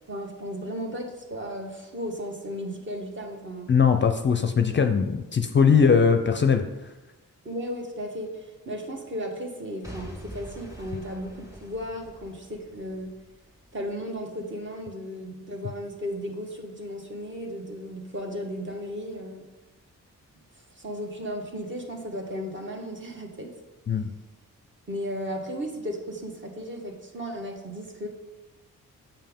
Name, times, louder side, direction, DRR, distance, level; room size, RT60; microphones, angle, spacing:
voice 1, 0.1-3.7 5.7-5.9 7.4-13.1 13.7-19.4 20.7-23.5 24.9-28.1, equal, 35° right, 2 dB, 1.3 m, -35 dB
voice 2, 3.7-6.7 23.9-24.1, left 6 dB, 35° left, 7 dB, 0.5 m, -20 dB
Boom / Shatter / Crushing, 9.8-13.8 14.4-14.5, equal, 10° right, 1.5 m, -45 dB
7.1 x 5.5 x 3.6 m, 1.1 s
cardioid pair, 80°, 33 cm